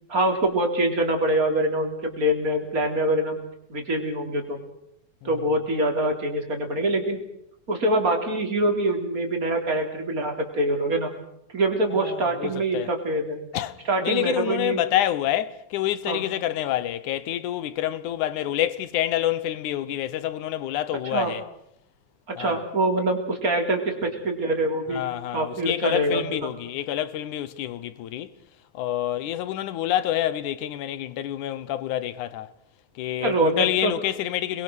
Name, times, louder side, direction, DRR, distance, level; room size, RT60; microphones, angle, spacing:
voice 1, 0.1-3.4 3.7-4.6 5.2-7.2 7.7-11.1 11.5-13.4 13.9-14.8 16.1-16.3 21.0-21.3 22.3-25.0 25.3-26.5 33.2-33.9, right 1 dB, 30° right, 3.8 m, -24 dB
voice 2, 11.9-12.9 13.5-21.4 22.4-22.6 24.9-28.3 28.7-32.5 33.0-34.6, left 12 dB, 85° left, 2.5 m, -27 dB
29.5 x 21.5 x 6.3 m
omnidirectional pair, 3.4 m